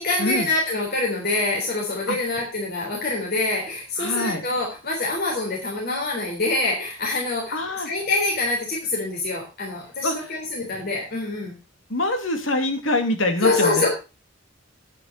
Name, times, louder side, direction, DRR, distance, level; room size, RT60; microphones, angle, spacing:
voice 1, 0.0-7.6 7.8-11.5 13.4-13.9, left 2 dB, 50° left, -2 dB, 3.8 m, -25 dB
voice 2, 4.0-4.4 7.5-7.9 10.0-10.1 11.9-13.9, left 1 dB, 80° left, 6 dB, 2.5 m, -24 dB
10.0 x 9.4 x 5.4 m, 0.31 s
head